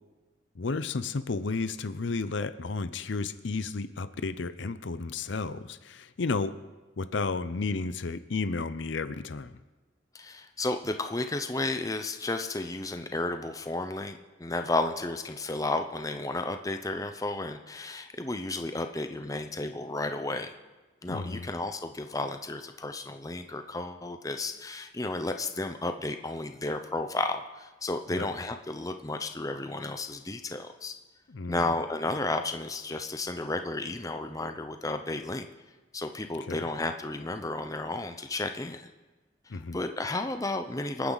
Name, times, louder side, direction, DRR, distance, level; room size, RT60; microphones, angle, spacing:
voice 1, 0.5-6.6 7.0-9.5 21.1-21.5 28.1-28.3 31.3-31.7 36.4-36.6 39.5-39.8, left 4 dB, 70° left, 13 dB, 0.6 m, -32 dB
voice 2, 10.1-20.5 21.0-31.0 31.5-35.5 35.9-38.9 39.7-41.1, left 2 dB, 15° left, 7 dB, 0.7 m, -33 dB
27.0 x 9.5 x 4.0 m, 1.2 s
head